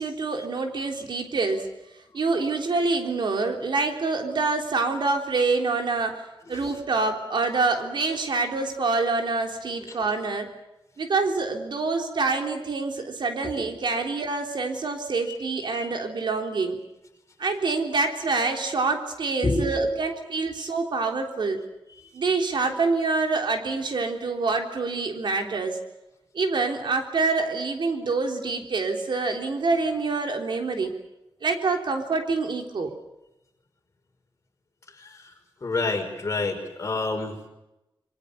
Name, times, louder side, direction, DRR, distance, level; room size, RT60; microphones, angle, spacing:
voice 1, 0.0-1.7 2.1-6.2 6.5-10.5 11.0-16.8 17.4-21.6 22.1-25.8 26.3-30.9 31.4-32.9, right 3 dB, 60° right, 4 dB, 3.5 m, -26 dB
voice 2, 19.4-19.8 35.0-35.2 35.6-37.4, left 2 dB, 35° left, 3 dB, 5.2 m, -27 dB
27.0 x 23.5 x 6.9 m, 0.93 s
wide cardioid pair, 180°, 9 cm